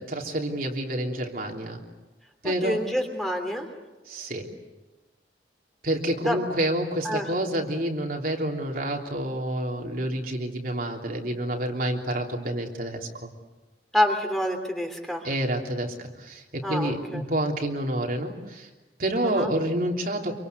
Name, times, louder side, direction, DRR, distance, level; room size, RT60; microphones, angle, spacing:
voice 1, 0.0-1.8 2.4-2.8 4.1-4.5 5.8-13.3 15.2-18.7 19.0-20.4, right 1 dB, 55° right, 1 dB, 3.2 m, -28 dB
voice 2, 2.4-3.7 6.2-6.4 7.0-7.3 13.9-15.3 16.6-17.2 19.2-19.5, left 1 dB, ahead, 4 dB, 3.0 m, -27 dB
26.5 x 25.0 x 8.2 m, 1.1 s
head